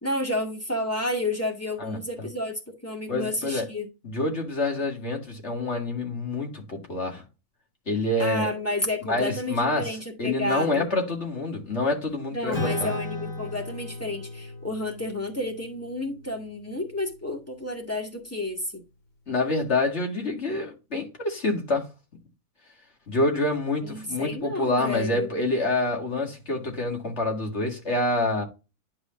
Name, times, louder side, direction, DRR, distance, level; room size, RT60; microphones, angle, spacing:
voice 1, 0.0-3.9 8.2-10.9 12.3-18.8 23.8-25.3, left 1 dB, 10° left, 1.9 m, -31 dB
voice 2, 1.8-2.3 3.1-3.7 4.0-7.2 7.9-8.5 9.1-12.9 19.3-21.9 23.1-28.4, left 2 dB, 50° left, 2.3 m, -27 dB
Acoustic guitar / Strum, 12.5-17.3, left 2 dB, 65° left, 5.3 m, -36 dB
11.0 x 4.9 x 2.6 m
omnidirectional pair, 1.5 m